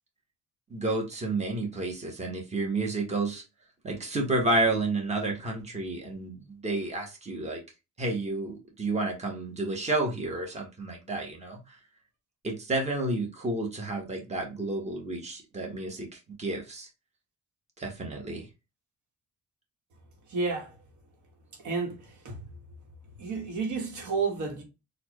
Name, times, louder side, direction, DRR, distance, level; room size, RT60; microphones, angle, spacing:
voice 1, 0.7-3.4 3.8-7.6 8.0-11.8 12.4-16.9 17.8-18.5, right 2 dB, 20° right, 1.3 m, -31 dB
voice 2, 20.3-20.8 21.6-22.5 23.2-24.6, right 4 dB, 75° right, 1.4 m, -31 dB
4.3 x 2.5 x 3.0 m
cardioid pair, 90°, 30 cm